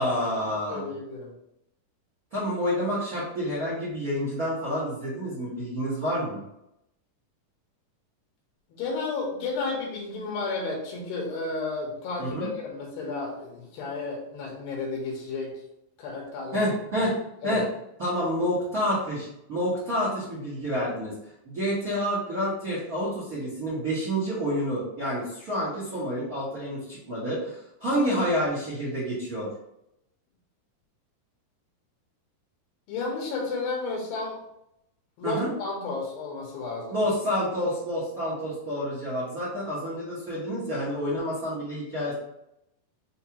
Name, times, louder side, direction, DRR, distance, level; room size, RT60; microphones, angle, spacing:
voice 1, 0.0-0.9 2.3-6.4 12.2-12.5 16.5-17.1 17.4-17.6 18.0-21.1 21.4-29.5 35.2-35.5 36.9-42.1, equal, 80° right, -9 dB, 0.8 m, -28 dB
voice 2, 0.7-1.3 8.7-15.6 16.0-16.7 16.9-17.0 17.4-17.6 32.9-34.4 35.2-36.9, left 3 dB, 90° left, -1 dB, 2.9 m, -32 dB
6.5 x 2.3 x 2.9 m, 0.79 s
omnidirectional pair, 4.1 m